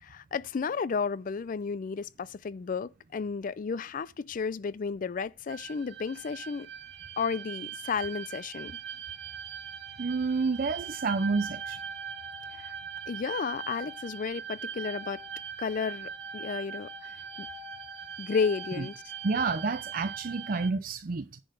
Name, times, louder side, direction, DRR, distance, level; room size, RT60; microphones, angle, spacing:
voice 1, 0.0-6.7 7.2-8.8 12.5-12.7 13.1-15.2 15.6-17.1 17.4-17.5 18.2-18.9, left 5 dB, 45° left, 0.4 m, -32 dB
sound 1, 5.5-20.7, right 7 dB, 80° right, 2.2 m, -41 dB
voice 2, 10.0-11.8 19.2-21.4, right 4 dB, 50° right, 0.6 m, -29 dB
10.0 x 3.9 x 6.7 m
head